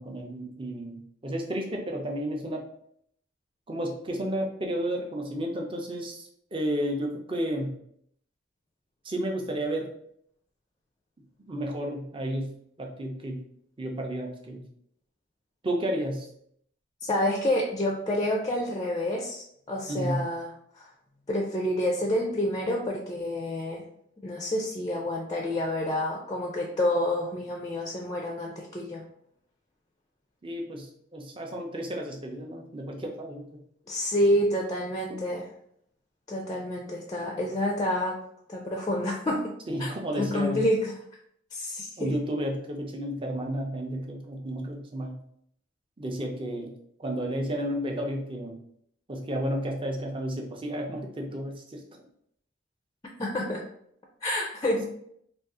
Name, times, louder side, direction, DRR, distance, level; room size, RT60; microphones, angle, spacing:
voice 1, 0.0-2.6 3.7-7.7 9.0-9.9 11.5-13.4 13.8-14.6 15.6-16.3 19.9-20.3 30.4-33.6 39.7-40.7 42.0-45.2 46.0-46.7 47.0-48.6 49.1-51.8, equal, 30° right, 1 dB, 0.5 m, -32 dB
voice 2, 17.0-20.5 20.8-20.9 21.3-23.8 24.2-29.0 33.9-35.5 36.3-38.2 38.5-39.5 39.8-39.9 40.2-40.9 41.5-42.1 53.2-53.6 54.2-54.9, left 1 dB, 20° left, 0 dB, 0.4 m, -28 dB
2.5 x 2.4 x 3.7 m, 0.69 s
head